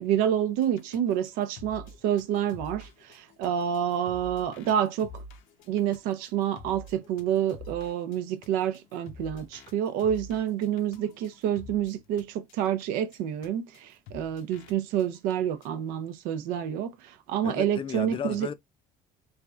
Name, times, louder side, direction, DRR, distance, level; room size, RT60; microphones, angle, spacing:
voice 1, 0.0-5.1 5.7-17.0 17.3-18.5, right 9 dB, 90° right, 0.5 m, -28 dB
sound 1, 0.6-12.2 12.5-12.8 13.1-13.2 13.4-13.5 13.7-13.8 14.1-14.7 15.0-15.3 15.6-15.7, left 3 dB, 80° left, 0.7 m, -47 dB
voice 2, 17.4-18.5, left 8 dB, 40° left, 0.4 m, -34 dB
3.2 x 2.5 x 2.3 m
cardioid pair, 105°, 14 cm